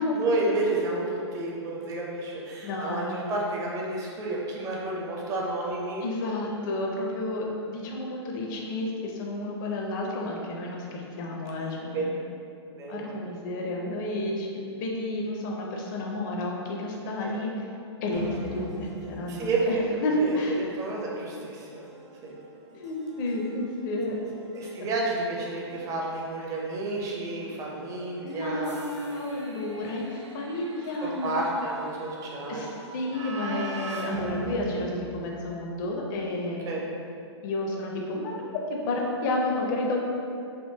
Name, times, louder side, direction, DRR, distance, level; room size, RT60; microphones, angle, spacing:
voice 1, 0.2-6.0 11.9-12.0 12.8-13.1 17.2-17.3 19.3-21.8 22.2-22.4 24.5-28.8 31.0-32.7 36.6-36.8, right 2 dB, 20° right, -3 dB, 0.5 m, -30 dB
voice 2, 2.6-3.4 6.0-12.1 12.9-17.7 18.0-20.6 22.7-24.3 24.6-24.7 28.2-31.3 32.5-36.8 37.4-38.5 38.9-40.0, left 1 dB, 45° left, -1 dB, 0.4 m, -31 dB
sound 1, 18.1-35.8, right 2 dB, 80° right, 0.5 m, -41 dB
3.5 x 2.5 x 2.7 m, 2.6 s
hypercardioid pair, 125°, 15 cm